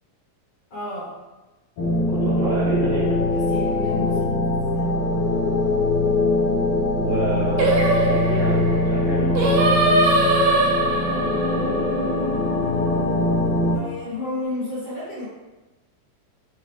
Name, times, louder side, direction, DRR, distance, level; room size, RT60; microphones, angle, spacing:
voice 1, 0.7-1.1 3.2-4.3 4.7-4.9 13.7-15.3, left 2 dB, 50° left, -9 dB, 1.7 m, -31 dB
sound 1, 1.8-13.8, left 2 dB, 80° left, 1.2 m, -22 dB
voice 2, 2.1-3.2 7.0-9.6, right 4 dB, 60° right, -8 dB, 1.5 m, -28 dB
Singing, 7.6-12.9, right 2 dB, 75° right, 1.8 m, -22 dB
5.4 x 2.5 x 3.2 m, 1.1 s
omnidirectional pair, 3.4 m